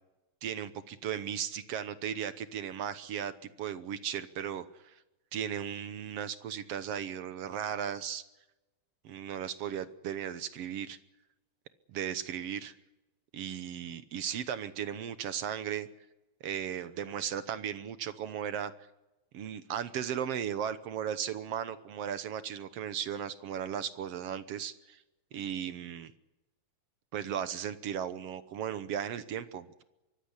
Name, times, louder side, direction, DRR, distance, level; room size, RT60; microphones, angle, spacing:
voice 1, 0.4-3.3 3.6-5.0 5.3-8.2 9.0-11.0 11.9-12.7 13.3-15.9 16.4-18.7 19.3-25.0 25.3-26.1 27.1-29.8, right 9 dB, 65° right, 13 dB, 1.8 m, -36 dB
24.0 x 15.0 x 9.9 m, 1.0 s
omnidirectional pair, 3.4 m